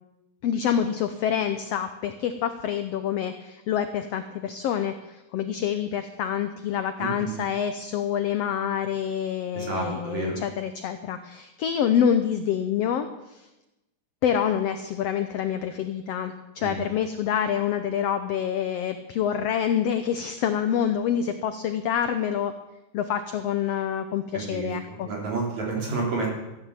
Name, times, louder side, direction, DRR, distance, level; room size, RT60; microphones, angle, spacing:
voice 1, 0.4-13.5 14.2-22.5 22.9-25.1, left 8 dB, 80° left, 9 dB, 1.4 m, -27 dB
voice 2, 7.0-7.3 9.6-10.4 16.6-16.7 24.3-24.7 25.0-26.3, right 3 dB, 60° right, -2 dB, 5.1 m, -30 dB
14.5 x 9.8 x 7.4 m, 0.99 s
omnidirectional pair, 3.7 m